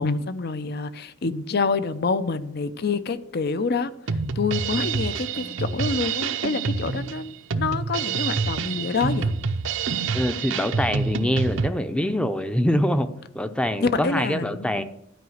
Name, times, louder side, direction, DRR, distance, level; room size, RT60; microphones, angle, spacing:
voice 1, 0.0-3.9 4.4-9.3 13.8-14.8, left 4 dB, 50° left, 0.6 m, -27 dB
Drum kit, 4.1-11.7, right 5 dB, 65° right, 0.7 m, -27 dB
voice 2, 10.1-13.1 13.3-14.8, equal, 5° left, 0.6 m, -24 dB
12.5 x 4.9 x 7.8 m
head